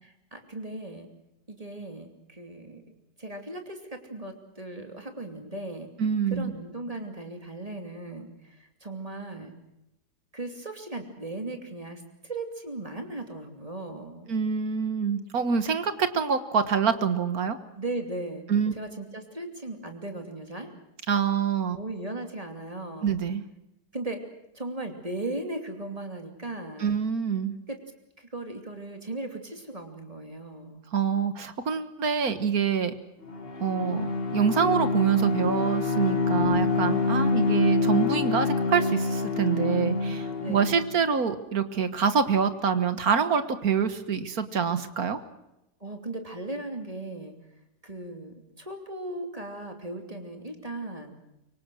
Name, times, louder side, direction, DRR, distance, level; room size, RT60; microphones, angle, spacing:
voice 1, 0.0-1.1 1.5-2.8 3.2-5.9 6.3-9.5 10.3-14.3 17.8-18.4 18.8-20.7 21.7-23.1 23.9-24.2 24.5-26.9 27.7-27.8 28.2-30.8 40.4-40.6 45.8-47.3 47.8-51.1, right 2 dB, 20° right, 4 dB, 2.9 m, -37 dB
voice 2, 6.0-6.5 14.3-17.6 18.5-18.7 21.1-21.8 23.0-23.4 26.8-27.5 30.9-32.9 33.6-45.2, right 6 dB, 60° right, 10 dB, 1.9 m, -26 dB
Bowed string instrument, 33.2-41.0, left 4 dB, 35° left, 2.1 m, -26 dB
25.0 x 24.0 x 6.3 m, 0.91 s
omnidirectional pair, 1.8 m